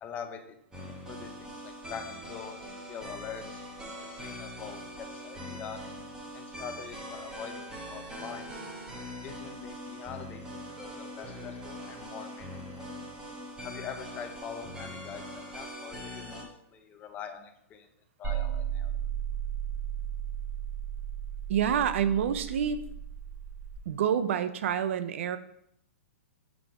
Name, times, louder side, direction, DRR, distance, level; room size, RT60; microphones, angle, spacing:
voice 1, 0.0-0.6 0.9-2.6 2.9-3.6 4.2-5.8 6.3-8.5 9.2-12.5 12.8-12.9 13.6-17.9 18.2-18.9, left 7 dB, 20° left, 7 dB, 0.6 m, -44 dB
sound 1, 0.7-16.4, equal, 10° right, 1.0 m, -42 dB
sound 2, 18.2-23.8, right 9 dB, 25° right, 2.0 m, -35 dB
voice 2, 21.5-22.8 23.9-25.4, right 8 dB, 65° right, 12 dB, 0.5 m, -27 dB
6.0 x 3.4 x 4.9 m, 0.75 s
hypercardioid pair, 155°, 7 cm